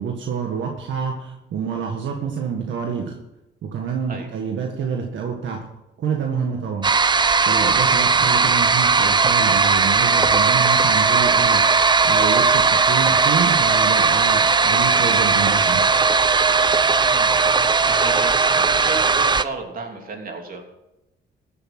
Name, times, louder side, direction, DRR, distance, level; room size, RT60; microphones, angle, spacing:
voice 1, 0.0-3.2 3.7-5.6 6.0-6.9 7.5-11.6 12.0-15.8, right 6 dB, 70° right, 2 dB, 1.7 m, -27 dB
sound 1, 6.8-19.4, right 4 dB, 25° right, 0.6 m, -17 dB
voice 2, 16.9-20.6, right 3 dB, 45° right, 2 dB, 3.1 m, -35 dB
15.0 x 7.9 x 6.1 m, 0.92 s
cardioid pair, 90°, 20 cm